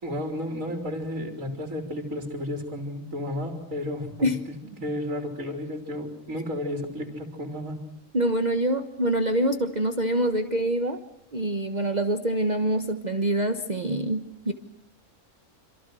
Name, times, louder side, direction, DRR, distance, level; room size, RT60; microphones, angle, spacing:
voice 1, 0.0-4.3 4.8-7.9, left 1 dB, 80° right, 4 dB, 3.9 m, -32 dB
voice 2, 8.1-11.0 11.3-14.5, right 1 dB, 35° right, 8 dB, 1.3 m, -25 dB
27.5 x 27.0 x 6.3 m, 0.80 s
omnidirectional pair, 1.4 m